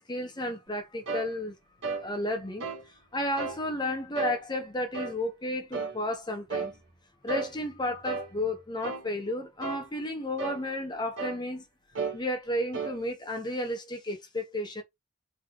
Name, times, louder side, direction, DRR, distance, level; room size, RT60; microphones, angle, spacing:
voice 1, 0.0-1.5 2.0-2.7 3.1-6.7 7.2-11.6 12.1-14.8, left 1 dB, 25° left, 1.0 m, -32 dB
sound 1, 1.1-1.3 1.8-2.1 2.6-2.8 3.4-3.6 4.2-4.4 4.9-5.2 5.7-6.0 6.5-6.7 7.3-7.5 8.1-8.3 8.8-9.1 9.6-9.9 10.4-10.6 11.2-11.4 12.0-12.2 12.7-13.0, right 4 dB, 80° right, 1.4 m, -33 dB
3.9 x 3.2 x 3.0 m
head